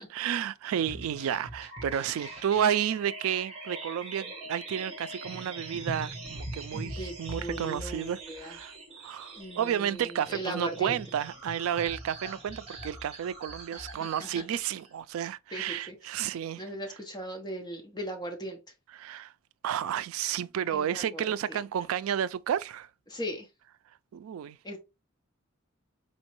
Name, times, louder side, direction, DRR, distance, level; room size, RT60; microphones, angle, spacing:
voice 1, 0.0-8.7 9.0-16.6 19.0-19.3 19.6-22.9 24.1-24.6, right 9 dB, 75° right, 0.3 m, -31 dB
sound 1, 0.8-14.9, right 1 dB, 30° right, 1.4 m, -42 dB
voice 2, 6.7-8.6 9.4-11.0 13.7-14.4 15.5-16.1 16.6-18.6 20.7-21.6 23.1-23.5 24.6-24.8, right 1 dB, 20° left, 0.9 m, -39 dB
4.4 x 3.1 x 2.9 m
head